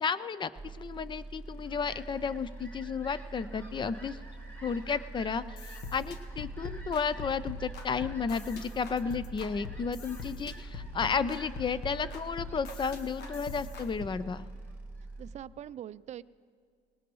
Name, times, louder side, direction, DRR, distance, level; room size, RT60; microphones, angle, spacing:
voice 1, 0.0-4.2 4.6-14.5, left 6 dB, 30° left, 16 dB, 0.5 m, -33 dB
sound 1, 0.5-15.3, right 2 dB, 10° right, 1.9 m, -45 dB
Fowl, 1.2-15.2, right 1 dB, 10° left, 1.7 m, -53 dB
sound 2, 5.4-14.1, left 3 dB, 75° left, 1.2 m, -43 dB
voice 2, 15.2-16.2, right 11 dB, 45° right, 17 dB, 0.4 m, -43 dB
19.5 x 19.0 x 3.1 m, 2.1 s
cardioid pair, 110°, 17 cm